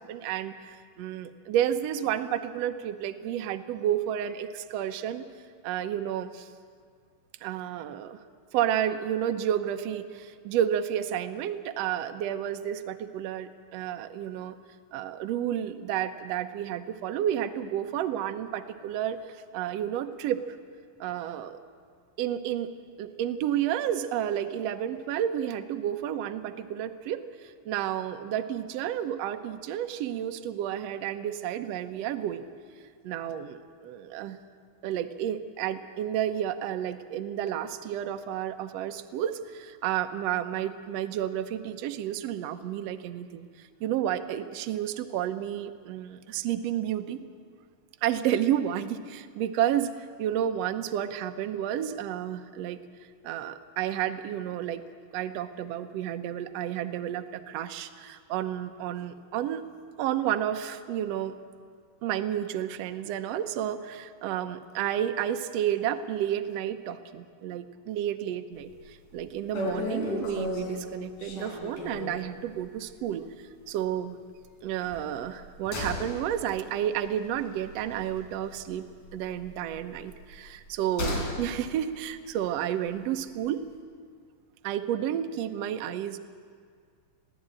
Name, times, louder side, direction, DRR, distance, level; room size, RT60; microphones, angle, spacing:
voice 1, 0.0-5.2 5.6-6.5 7.4-8.2 8.5-14.6 14.9-19.2 19.5-20.4 21.0-21.6 22.2-22.7 23.0-32.4 33.0-34.4 34.8-43.5 43.8-47.2 48.0-52.8 53.2-54.8 55.1-59.6 60.0-61.3 62.0-73.3 73.7-74.2 74.6-78.8 79.1-83.6 84.6-86.2, right 10 dB, 80° right, 7 dB, 1.4 m, -31 dB
sound 1, 68.6-68.9 69.2-69.3 69.5-72.3 72.6-72.8 73.1-73.2 74.8-78.8 79.0-81.5 81.7-81.8, left 1 dB, 60° left, 5.1 m, -35 dB
22.0 x 15.5 x 8.8 m, 2.1 s
omnidirectional pair, 4.1 m